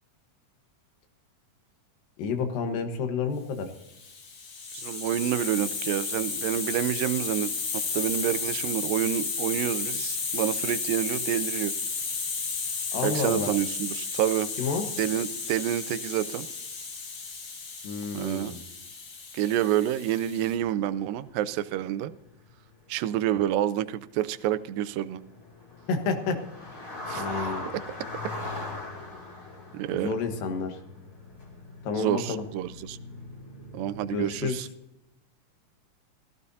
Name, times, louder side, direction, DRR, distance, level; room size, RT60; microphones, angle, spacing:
voice 1, 2.2-3.7 12.9-13.5 14.6-14.9 17.8-18.6 25.9-26.7 27.2-27.7 29.9-30.8 31.8-32.4 34.1-34.6, left 4 dB, 85° left, 6 dB, 3.1 m, -30 dB
Hiss, 3.9-20.5, left 5 dB, 65° left, 3.6 m, -33 dB
voice 2, 4.7-11.7 13.0-14.5 15.0-16.5 18.1-18.6 19.3-22.1 22.9-25.2 27.1-27.5 27.9-28.0 29.7-30.1 32.0-33.0 33.7-34.7, right 12 dB, 85° right, 14 dB, 2.3 m, -28 dB
sound 1, 20.2-21.2 21.4-34.5, left 2 dB, 40° left, 3.0 m, -41 dB
17.5 x 15.0 x 2.7 m, 0.85 s
omnidirectional pair, 3.9 m